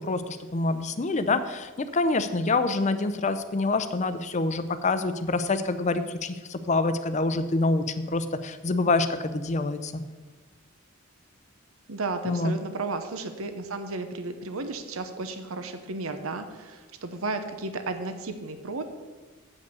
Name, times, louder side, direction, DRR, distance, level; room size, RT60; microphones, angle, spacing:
voice 1, 0.0-10.0 12.2-12.5, left 3 dB, 35° left, 11 dB, 0.5 m, -26 dB
voice 2, 11.9-18.8, right 3 dB, 80° right, 8 dB, 0.8 m, -33 dB
8.1 x 5.4 x 6.8 m, 1.3 s
head